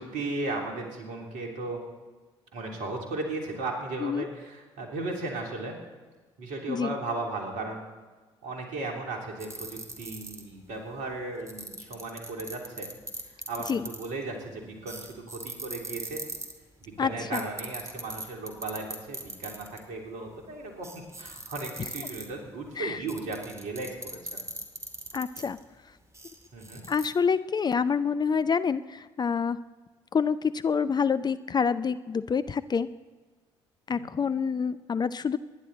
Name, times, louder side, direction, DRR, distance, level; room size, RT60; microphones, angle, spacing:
voice 1, 0.0-1.8 2.5-5.8 6.4-7.8 8.4-12.9 13.2-16.2 16.8-20.9 21.2-24.4 26.5-26.8 33.9-34.1, right 2 dB, 60° right, 1 dB, 3.2 m, -36 dB
sound 1, 9.4-10.6 11.5-14.2 14.9-16.5 17.3-19.8 20.3-20.4 20.8-22.5 23.1-25.6 26.1-27.1, right 2 dB, 20° right, 2.5 m, -39 dB
voice 2, 17.0-17.4 22.8-23.0 25.1-25.6 26.9-29.6 30.1-32.9 33.9-35.4, left 6 dB, 30° left, 13 dB, 0.5 m, -27 dB
25.5 x 11.0 x 4.1 m, 1.3 s
figure-of-eight pair, 50°, 14 cm